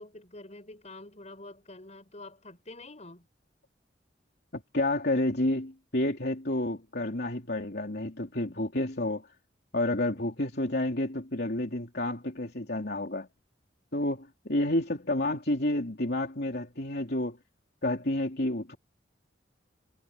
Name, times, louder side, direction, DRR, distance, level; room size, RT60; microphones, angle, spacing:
voice 1, 0.0-3.3, left 2 dB, 35° left, 6.4 m, -47 dB
voice 2, 4.7-9.3 9.7-13.3 13.9-17.4 17.8-18.8, left 1 dB, 60° left, 3.4 m, -30 dB
head